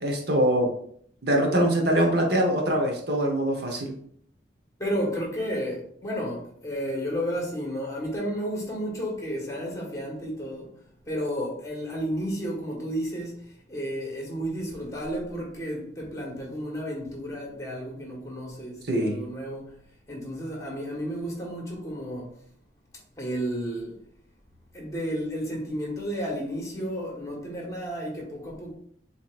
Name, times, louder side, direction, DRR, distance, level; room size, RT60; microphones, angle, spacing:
voice 1, 0.0-0.7 1.2-3.9 18.9-19.2, right 1 dB, 60° right, 1.0 m, -23 dB
voice 2, 4.8-13.4 13.7-19.7 20.1-22.3 23.2-23.9 24.7-28.7, equal, 20° left, 1.4 m, -32 dB
7.2 x 2.9 x 2.5 m
head